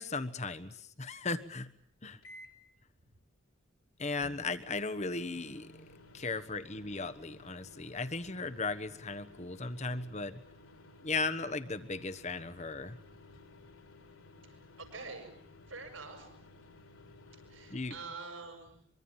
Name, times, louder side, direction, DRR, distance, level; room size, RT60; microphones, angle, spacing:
voice 1, 0.0-1.7 2.0-2.2 4.0-5.7 6.1-10.4 11.0-13.0 17.7-17.9, left 3 dB, 35° left, 11 dB, 1.3 m, -36 dB
sound 1, 2.2-2.7 4.2-18.1, left 2 dB, 90° left, 4.7 m, -56 dB
voice 2, 14.5-15.3 15.6-16.3 17.3-18.9, right 4 dB, 80° right, 6 dB, 7.1 m, -46 dB
24.5 x 24.0 x 7.4 m, 0.63 s
head